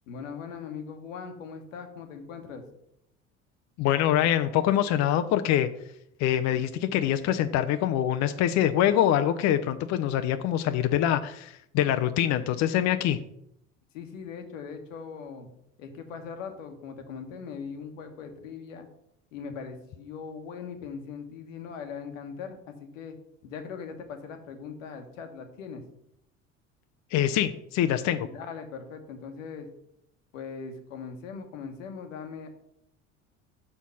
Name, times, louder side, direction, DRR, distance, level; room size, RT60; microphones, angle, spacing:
voice 1, 0.1-2.6 13.9-15.5 15.8-18.9 19.3-23.2 23.4-25.8 28.2-29.7 30.3-32.5, left 6 dB, 75° left, 6 dB, 1.2 m, -40 dB
voice 2, 3.8-5.7 6.2-13.2 27.1-28.3, left 11 dB, 45° left, 9 dB, 0.5 m, -24 dB
5.8 x 4.3 x 5.5 m, 0.75 s
hypercardioid pair, 70°, 39 cm